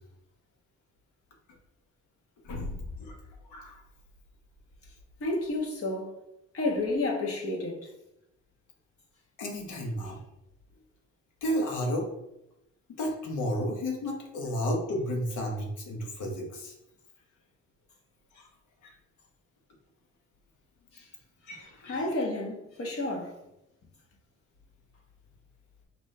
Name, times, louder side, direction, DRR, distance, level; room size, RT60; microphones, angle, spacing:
voice 1, 2.4-3.1 3.5-3.8 9.4-10.2 11.4-12.1 12.9-16.7 21.5-22.0, equal, 80° left, 1.2 m, -32 dB
voice 2, 5.2-6.1 6.5-7.9 20.9-21.1 21.8-23.3, left 2 dB, 50° left, 1.3 m, -31 dB
5.2 x 2.8 x 3.2 m
cardioid pair, 90°, 30 cm